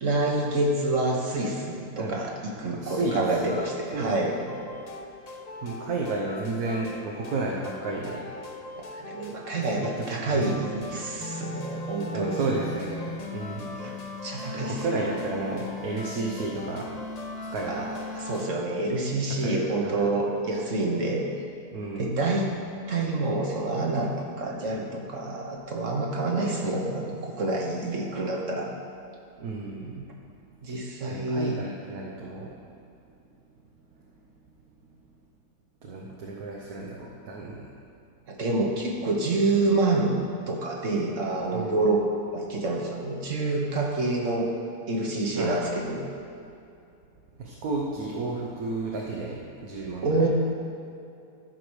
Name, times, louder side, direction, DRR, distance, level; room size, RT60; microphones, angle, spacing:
voice 1, 0.0-4.4 8.8-12.4 13.7-13.9 14.2-15.1 17.7-21.2 22.0-22.5 22.9-28.7 30.6-31.6 38.3-40.1 40.5-42.0 42.3-44.5 44.9-46.0 50.0-50.3, right 2 dB, 55° right, -1 dB, 1.6 m, -27 dB
voice 2, 2.7-3.6 3.9-4.2 5.6-8.2 10.0-10.9 12.1-13.8 14.4-16.9 17.5-17.8 19.4-20.2 21.7-22.1 29.4-30.0 31.1-32.5 35.8-37.7 41.5-41.8 45.3-45.7 47.4-50.3, right 3 dB, 75° right, -2 dB, 1.5 m, -32 dB
sound 1, 2.9-18.5, left 2 dB, 45° left, 0.5 m, -39 dB
13.0 x 5.0 x 6.3 m, 2.6 s
omnidirectional pair, 1.6 m